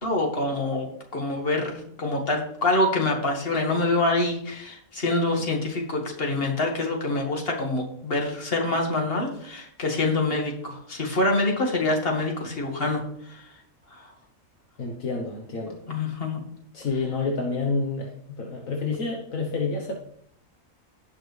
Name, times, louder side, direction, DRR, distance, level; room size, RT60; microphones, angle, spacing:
voice 1, 0.0-13.0 13.3-13.4 15.7-16.4, left 2 dB, 40° left, 1 dB, 2.1 m, -26 dB
voice 2, 14.8-15.8 16.7-18.1 18.4-19.9, left 4 dB, 70° left, 0 dB, 1.5 m, -28 dB
17.0 x 5.9 x 3.4 m, 0.69 s
omnidirectional pair, 1.5 m